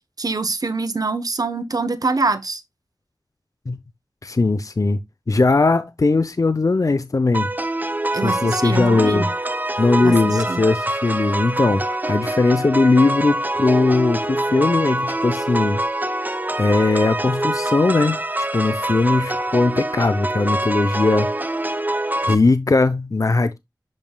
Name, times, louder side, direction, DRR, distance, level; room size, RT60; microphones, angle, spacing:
voice 1, 0.2-2.6 8.1-9.3 10.0-10.6, right 3 dB, 60° right, 0.9 m, -24 dB
voice 2, 4.2-5.0 5.3-7.5 8.1-9.3 9.8-15.8 16.6-18.2 18.5-21.3 22.2-23.6, left 3 dB, 50° left, 0.6 m, -19 dB
sound 1, 7.3-22.3, right 1 dB, 25° right, 0.8 m, -25 dB
10.5 x 5.4 x 2.3 m
wide cardioid pair, 65°, 7 cm